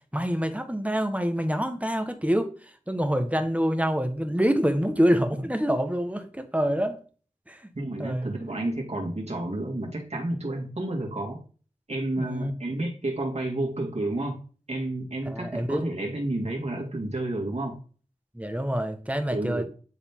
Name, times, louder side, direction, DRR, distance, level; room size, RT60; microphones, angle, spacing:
voice 1, 0.1-2.5 2.9-7.0 7.5-7.7 8.0-8.3 12.2-12.5 15.3-15.8 18.3-19.6, equal, 10° right, 7 dB, 1.3 m, -26 dB
voice 2, 7.7-11.4 11.9-14.4 14.7-17.8 19.3-19.7, right 1 dB, 55° right, 0 dB, 2.4 m, -30 dB
9.9 x 4.0 x 3.7 m, 0.39 s
cardioid pair, 40°, 13 cm